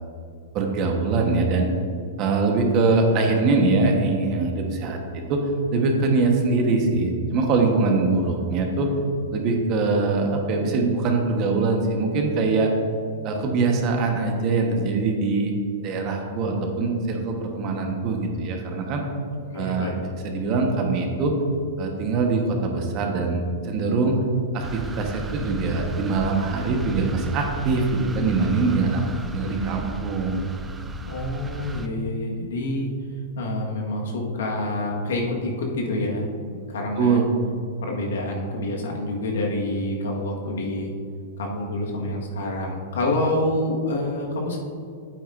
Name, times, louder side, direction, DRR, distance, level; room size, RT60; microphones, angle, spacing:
voice 1, 0.5-1.7 2.2-5.4 5.7-8.9 9.3-12.7 13.2-15.5 15.8-19.0 19.5-21.3 21.8-24.2 24.5-29.0 29.3-30.4 37.0-37.2, right 3 dB, 40° right, 2 dB, 1.2 m, -23 dB
voice 2, 19.5-20.0 31.0-32.9 33.3-37.2 37.8-40.9 41.4-44.6, left 1 dB, 80° left, -1 dB, 1.5 m, -27 dB
sound 1, 24.6-31.9, right 3 dB, 15° right, 0.5 m, -35 dB
8.7 x 8.4 x 2.6 m, 2.4 s
hypercardioid pair, 130°, 0 cm